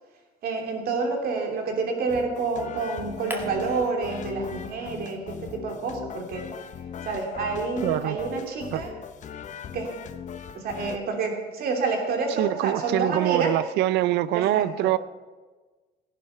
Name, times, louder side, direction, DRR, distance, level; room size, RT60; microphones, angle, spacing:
voice 1, 0.4-6.4 7.0-8.9 9.7-9.9 10.5-13.5 14.3-14.9, right 4 dB, 65° right, 3 dB, 3.1 m, -28 dB
sound 1, 2.1-11.0, left 8 dB, 45° left, 0.9 m, -39 dB
sound 2, 3.3-5.0 5.3-7.7, right 1 dB, 10° right, 1.9 m, -44 dB
voice 2, 7.8-8.2 8.7-8.8 12.4-15.0, right 14 dB, 85° right, 18 dB, 0.5 m, -24 dB
17.0 x 10.5 x 5.6 m, 1.3 s
cardioid pair, 110°, 17 cm